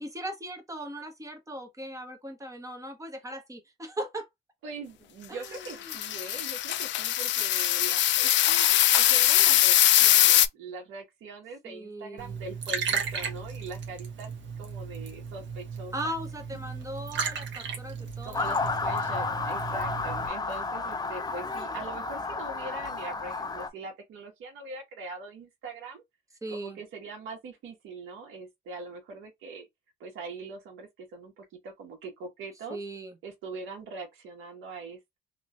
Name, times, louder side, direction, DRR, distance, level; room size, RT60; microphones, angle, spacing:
voice 1, 0.0-4.3 5.3-6.0 11.6-12.4 15.9-18.5 20.1-20.7 26.4-26.8 32.7-33.2, right 1 dB, 15° right, 1.3 m, -39 dB
voice 2, 4.6-14.3 14.6-16.1 17.9-26.0 26.5-29.7 30.0-32.8 33.2-35.2, right 3 dB, 85° right, 1.5 m, -42 dB
sound 1, 5.7-10.5, left 13 dB, 70° left, 0.4 m, -22 dB
Liquid, 12.2-20.3, right 6 dB, 65° right, 1.2 m, -35 dB
Motor vehicle (road) / Siren, 18.3-23.7, left 3 dB, 20° left, 0.6 m, -32 dB
3.0 x 3.0 x 2.7 m
cardioid pair, 90°, 20 cm